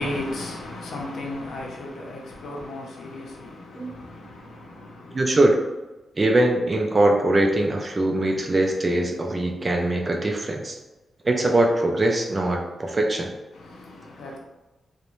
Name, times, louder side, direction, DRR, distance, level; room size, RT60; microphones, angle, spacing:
voice 1, 0.0-5.4 13.5-14.4, left 1 dB, 85° left, 0.5 m, -35 dB
voice 2, 5.1-5.6 6.2-10.8 11.2-13.3, right 1 dB, 25° right, 0.3 m, -22 dB
2.5 x 2.1 x 2.9 m
wide cardioid pair, 160°, 0 cm